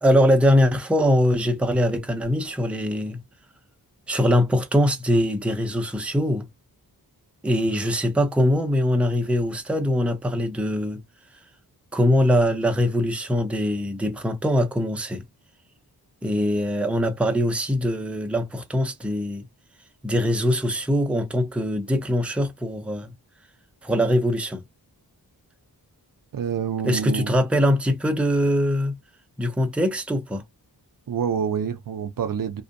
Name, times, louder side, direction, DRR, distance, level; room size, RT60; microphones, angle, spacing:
voice 1, 0.0-3.2 4.1-6.5 7.4-11.0 11.9-15.2 16.2-19.4 20.0-23.1 23.8-24.6 26.8-29.0 29.4-30.4, equal, 5° right, 0.5 m, -22 dB
voice 2, 26.3-27.4 31.1-32.6, right 7 dB, 55° right, 0.5 m, -27 dB
2.5 x 2.1 x 2.5 m
wide cardioid pair, 75°, 40 cm